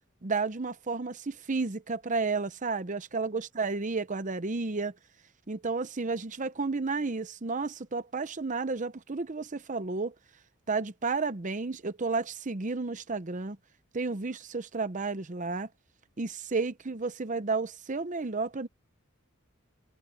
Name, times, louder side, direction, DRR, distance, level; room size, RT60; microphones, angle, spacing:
voice 1, 0.2-5.0 5.5-10.1 10.7-13.6 13.9-15.7 16.2-18.7, right 4 dB, 35° right, 0.8 m, -32 dB
head